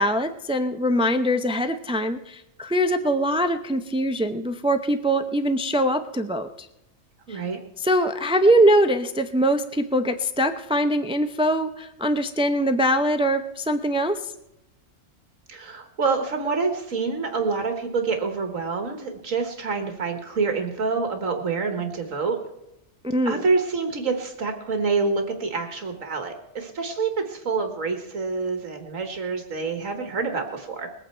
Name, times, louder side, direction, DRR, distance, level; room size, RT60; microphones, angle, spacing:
voice 1, 0.0-6.7 7.3-7.4 7.8-14.3 23.1-23.4, equal, 10° right, 8 dB, 0.3 m, -22 dB
voice 2, 7.3-7.6 15.5-22.4 23.3-30.9, right 4 dB, 80° right, 5 dB, 1.9 m, -27 dB
21.0 x 9.0 x 4.5 m, 0.87 s
omnidirectional pair, 1.4 m